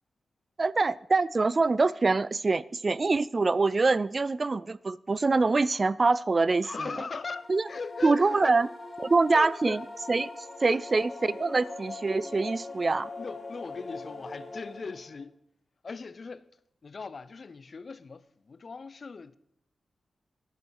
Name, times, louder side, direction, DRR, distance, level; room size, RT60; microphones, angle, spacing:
voice 1, 0.6-6.7 7.5-7.7 8.0-8.7 9.0-9.8 10.1-10.3 10.6-13.1, right 3 dB, 40° right, 0.3 m, -24 dB
voice 2, 6.6-8.6 9.3-9.8 10.6-10.8 13.2-15.4 15.8-16.5 16.8-19.4, left 4 dB, 50° left, 0.5 m, -39 dB
sound 1, 7.1-15.2, left 3 dB, 35° left, 4.0 m, -42 dB
10.5 x 9.4 x 4.8 m
cardioid pair, 70°, 0 cm